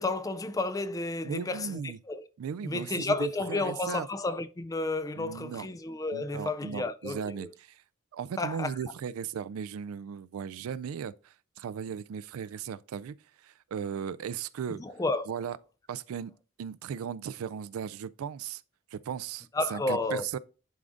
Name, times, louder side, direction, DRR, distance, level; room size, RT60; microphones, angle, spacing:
voice 1, 0.0-2.2 2.6-7.5 8.4-8.7 14.7-15.3 19.5-20.3, left 2 dB, 15° left, 0.3 m, -32 dB
voice 2, 1.2-2.0 2.4-4.1 5.2-5.7 6.1-7.7 8.1-13.2 13.4-14.8 15.3-15.6 15.9-18.6 18.9-20.4, right 7 dB, 85° right, 0.3 m, -37 dB
11.0 x 3.7 x 2.5 m
head